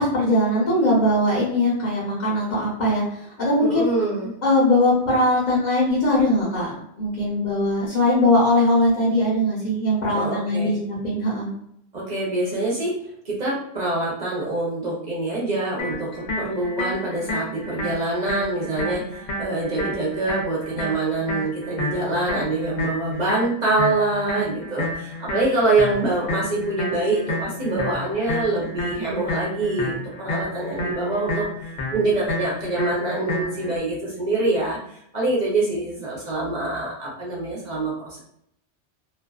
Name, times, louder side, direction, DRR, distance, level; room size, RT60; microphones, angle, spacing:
voice 1, 0.0-3.9 4.4-6.7 7.0-11.5, left 1 dB, 40° left, -8 dB, 1.0 m, -20 dB
voice 2, 3.6-4.3 10.1-10.8 11.9-13.0 13.3-19.0 19.4-31.5 31.9-34.8 35.1-38.2, right 2 dB, 45° right, -5 dB, 0.7 m, -25 dB
sound 1, 15.8-33.8, left 1 dB, 85° left, 1.0 m, -31 dB
2.5 x 2.2 x 2.3 m, 0.71 s
omnidirectional pair, 1.2 m